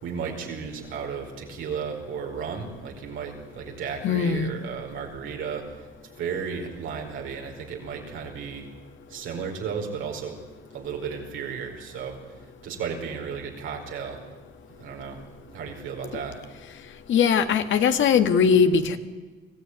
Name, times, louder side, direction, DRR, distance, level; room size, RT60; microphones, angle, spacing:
voice 1, 0.0-5.9 6.2-8.7 9.1-10.3 10.7-12.2 12.6-14.2 14.8-15.2 15.5-16.4, right 6 dB, 85° right, 2 dB, 4.9 m, -34 dB
voice 2, 4.0-4.5 17.1-19.0, left 6 dB, 75° left, 8 dB, 1.8 m, -20 dB
24.5 x 15.5 x 9.6 m, 1.3 s
cardioid pair, 90°, 20 cm